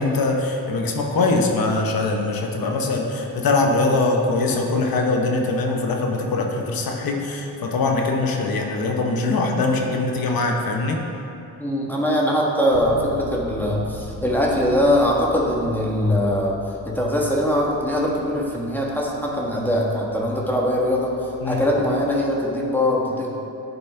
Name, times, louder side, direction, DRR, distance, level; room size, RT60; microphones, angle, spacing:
voice 1, 0.0-11.0 21.4-21.6, left 3 dB, 70° left, 2 dB, 1.0 m, -22 dB
voice 2, 11.6-16.6 16.8-21.1 21.4-23.3, equal, 5° left, -3 dB, 1.3 m, -21 dB
Bass guitar, 12.7-22.5, left 3 dB, 50° left, 0.8 m, -42 dB
10.5 x 4.2 x 3.4 m, 2.8 s
cardioid pair, 75°, 37 cm